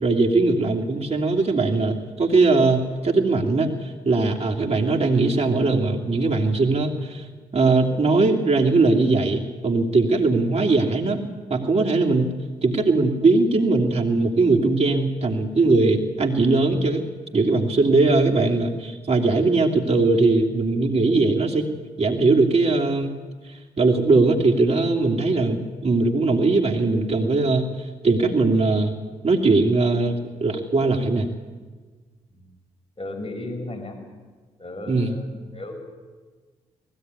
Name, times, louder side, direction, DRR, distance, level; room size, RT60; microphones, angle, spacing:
voice 1, 0.0-7.2 7.5-11.2 11.5-12.3 12.6-17.0 17.3-21.7 22.0-23.1 23.8-27.7 28.0-28.9 29.2-31.3 34.9-35.1, right 3 dB, 40° right, 0 dB, 2.9 m, -20 dB
voice 2, 33.0-34.0 34.6-35.9, left 2 dB, 35° left, 4 dB, 6.4 m, -35 dB
20.0 x 16.0 x 9.7 m, 1.4 s
hypercardioid pair, 40°, 17 cm